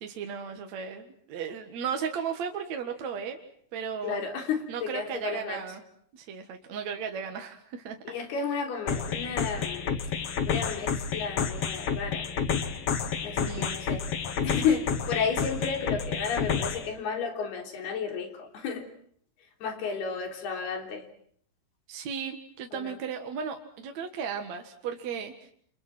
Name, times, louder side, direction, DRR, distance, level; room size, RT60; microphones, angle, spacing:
voice 1, 0.0-3.4 3.7-4.2 4.7-5.8 6.1-8.0 13.5-13.8 21.9-25.3, right 7 dB, 55° right, 5 dB, 2.5 m, -35 dB
voice 2, 4.0-5.6 8.1-9.9 10.5-12.3 13.2-14.0 14.4-18.9 19.6-21.1 22.7-23.0, left 6 dB, 80° left, 5 dB, 5.6 m, -32 dB
sound 1, 8.9-16.9, left 6 dB, 50° left, 2.1 m, -30 dB
29.5 x 28.5 x 6.1 m, 0.63 s
omnidirectional pair, 4.5 m